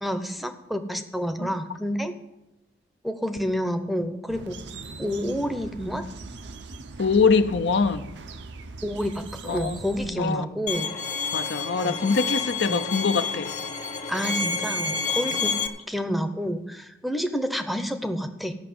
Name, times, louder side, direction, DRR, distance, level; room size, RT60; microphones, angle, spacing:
voice 1, 0.0-2.1 3.0-4.6 5.0-6.0 8.8-10.9 11.8-12.0 12.7-12.9 14.1-15.5 15.9-18.5, equal, ahead, 8 dB, 0.7 m, -29 dB
sound 1, 4.3-10.1, right 3 dB, 70° right, 0.7 m, -40 dB
voice 2, 7.0-8.2 9.4-10.5 11.3-13.5 15.3-15.4, left 4 dB, 70° left, 10 dB, 0.6 m, -24 dB
Bowed string instrument, 10.7-15.7, left 5 dB, 40° left, 1.1 m, -29 dB
13.0 x 5.9 x 7.8 m, 0.97 s
head